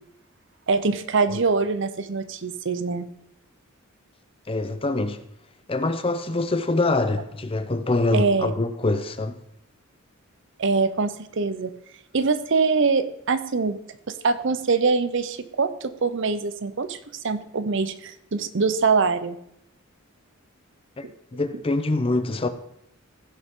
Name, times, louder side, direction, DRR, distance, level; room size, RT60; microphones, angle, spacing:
voice 1, 0.7-3.1 8.1-8.5 10.6-11.7 12.1-13.8 14.2-17.0 17.2-19.4 21.0-21.1, right 4 dB, 60° right, 0.7 m, -23 dB
voice 2, 4.5-5.2 5.7-9.4 21.0-21.1 21.3-22.5, left 2 dB, 25° left, 0.6 m, -24 dB
15.5 x 6.5 x 3.7 m
head